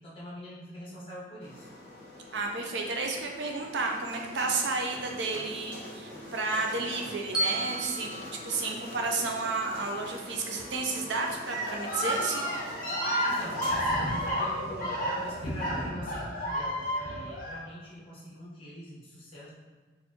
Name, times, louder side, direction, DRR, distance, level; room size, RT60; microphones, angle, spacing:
voice 1, 0.0-1.7 13.1-19.5, equal, 30° left, -6 dB, 1.0 m, -44 dB
sound 1, 1.4-15.9, left 1 dB, 45° right, 1.0 m, -45 dB
voice 2, 2.3-8.1 8.4-12.5, right 3 dB, 70° right, 2 dB, 0.5 m, -32 dB
Bell, 7.3-9.5, right 1 dB, 5° right, 0.4 m, -34 dB
sound 2, 11.5-17.6, equal, 45° left, 0.6 m, -31 dB
4.3 x 2.5 x 2.8 m, 1.4 s
head